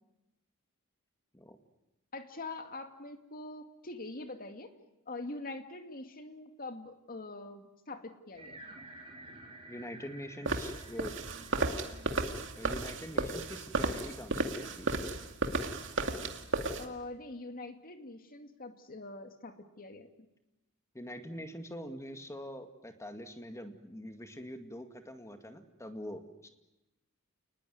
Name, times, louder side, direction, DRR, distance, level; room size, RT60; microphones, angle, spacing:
voice 1, 2.1-4.7 5.1-8.6 16.8-20.1, left 2 dB, 40° left, 7 dB, 2.3 m, -44 dB
sound 1, 8.3-13.5, right 2 dB, 25° right, 4.2 m, -53 dB
voice 2, 9.7-11.1 12.6-15.0 20.9-26.5, equal, 15° left, 7 dB, 2.1 m, -44 dB
sound 2, 10.5-16.9, right 3 dB, 55° right, 2.3 m, -34 dB
29.0 x 20.5 x 9.5 m, 0.96 s
head